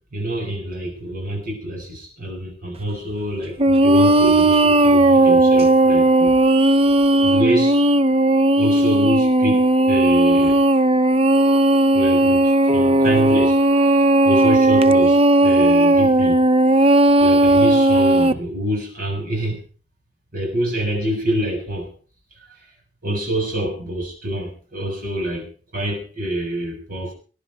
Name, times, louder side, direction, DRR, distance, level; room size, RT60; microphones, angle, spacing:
voice 1, 0.1-6.4 7.2-7.8 8.6-10.6 11.9-13.6 14.2-16.4 17.2-19.6 20.3-21.9 23.0-27.1, right 1 dB, 50° right, 1 dB, 6.7 m, -26 dB
sound 1, 3.6-18.3, right 1 dB, 35° right, 0.7 m, -15 dB
21.0 x 10.5 x 4.7 m, 0.37 s
head